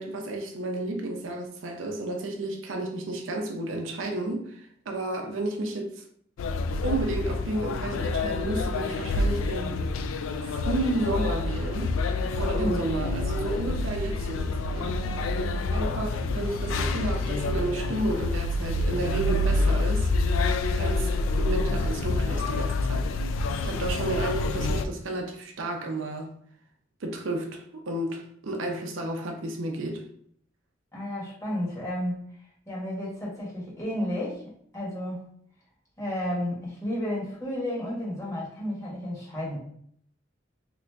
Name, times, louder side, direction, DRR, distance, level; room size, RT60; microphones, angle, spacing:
voice 1, 0.0-6.0 6.8-9.8 10.4-11.9 12.4-14.9 15.7-20.1 20.7-23.1 23.6-26.3 27.0-30.0, right 2 dB, 75° right, 0.6 m, -32 dB
sound 1, 6.4-24.9, left 2 dB, 85° left, 0.3 m, -27 dB
voice 2, 30.9-32.3 32.7-34.4 34.7-35.3 36.0-39.6, left 1 dB, 15° left, 1.3 m, -32 dB
2.9 x 2.6 x 3.3 m
head